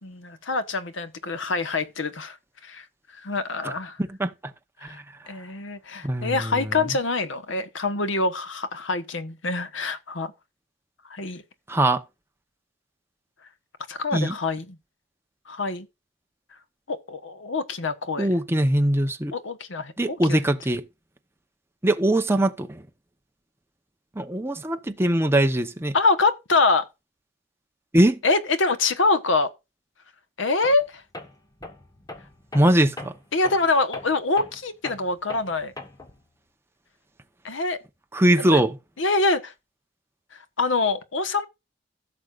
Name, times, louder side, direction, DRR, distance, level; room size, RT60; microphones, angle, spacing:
voice 1, 0.0-2.4 2.6-2.8 3.2-4.0 4.8-5.0 5.3-10.3 11.1-11.4 13.9-14.8 15.5-15.9 16.9-18.3 19.3-20.4 25.9-26.9 28.2-29.5 30.4-31.0 33.3-35.7 37.4-37.8 38.4-38.6 39.0-39.5 40.3-41.5, left 3 dB, 85° left, 1.2 m, -25 dB
voice 2, 6.0-6.6 11.7-12.0 14.1-14.4 18.2-19.3 20.0-20.8 21.8-22.8 24.2-25.9 27.9-28.2 32.5-33.1 38.1-38.8, right 1 dB, 15° right, 0.9 m, -21 dB
Tools, 30.6-30.9 31.1-36.2, left 2 dB, 20° left, 1.3 m, -40 dB
15.5 x 6.5 x 2.5 m
head